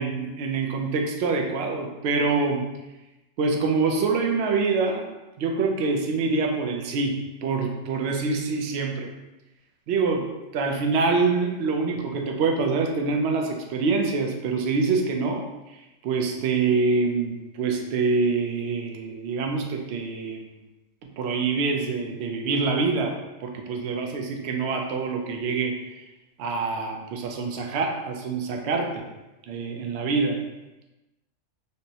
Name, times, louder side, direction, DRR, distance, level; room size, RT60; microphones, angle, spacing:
voice 1, 0.0-2.6 3.4-5.1 5.4-9.1 9.9-15.4 15.7-20.4 21.0-23.1 23.4-25.8 26.4-29.0 29.5-30.4, right 4 dB, 65° right, 2 dB, 0.7 m, -25 dB
5.2 x 2.0 x 2.8 m, 1.0 s
omnidirectional pair, 1.3 m